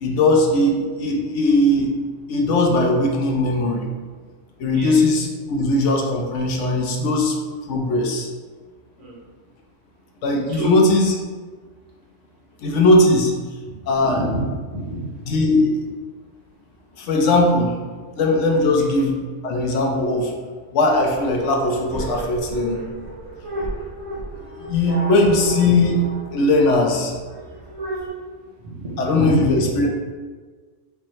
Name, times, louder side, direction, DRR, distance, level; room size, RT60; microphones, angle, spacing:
voice 1, 0.0-1.9 2.3-3.9 4.6-7.4 7.7-8.3 10.2-11.1 12.6-13.3 13.9-14.2 15.3-15.7 17.0-17.7 18.2-19.2 19.4-20.3 20.7-22.8 24.6-26.0 26.3-27.1 29.0-29.9, left 2 dB, 75° left, 1 dB, 0.9 m, -19 dB
voice 2, 14.0-15.2 18.8-18.9 28.6-29.8, right 1 dB, 70° right, -6 dB, 1.4 m, -28 dB
sound 1, 20.9-28.1, right 1 dB, 90° right, 1.1 m, -32 dB
5.3 x 2.0 x 3.0 m, 1.5 s
omnidirectional pair, 1.3 m